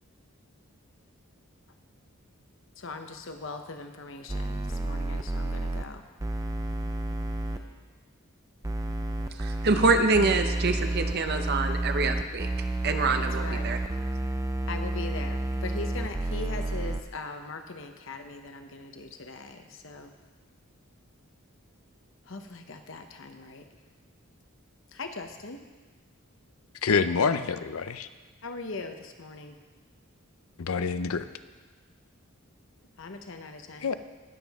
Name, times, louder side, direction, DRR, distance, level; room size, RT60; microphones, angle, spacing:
voice 1, 2.8-6.0 13.2-13.7 14.7-20.1 22.3-23.7 24.9-25.6 28.4-29.6 33.0-33.9, left 3 dB, 65° left, 6 dB, 0.9 m, -40 dB
sound 1, 4.3-5.8 6.2-7.6 8.6-17.0, right 1 dB, 15° right, 0.5 m, -30 dB
voice 2, 9.4-12.5 12.8-13.8, right 3 dB, 50° right, 6 dB, 0.8 m, -25 dB
voice 3, 26.8-28.1 30.6-31.3 33.8-33.9, left 5 dB, 90° left, 12 dB, 0.6 m, -26 dB
19.5 x 7.3 x 3.6 m, 1.3 s
head